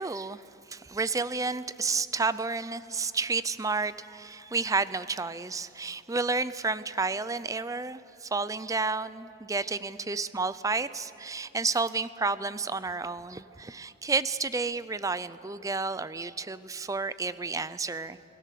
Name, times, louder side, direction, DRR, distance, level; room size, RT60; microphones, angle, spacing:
voice 1, 0.0-18.2, right 4 dB, 20° right, 15 dB, 0.5 m, -31 dB
26.5 x 19.0 x 6.7 m, 2.8 s
head